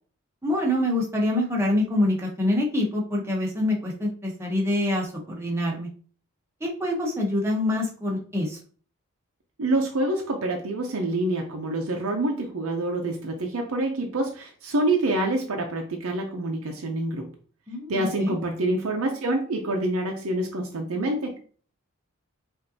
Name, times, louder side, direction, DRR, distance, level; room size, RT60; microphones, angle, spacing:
voice 1, 0.4-5.9 6.6-8.6 17.7-18.3, left 1 dB, 10° right, -2 dB, 0.9 m, -25 dB
voice 2, 9.6-17.3 17.9-21.3, right 2 dB, 70° right, 2 dB, 0.6 m, -26 dB
5.2 x 2.6 x 2.7 m, 0.42 s
head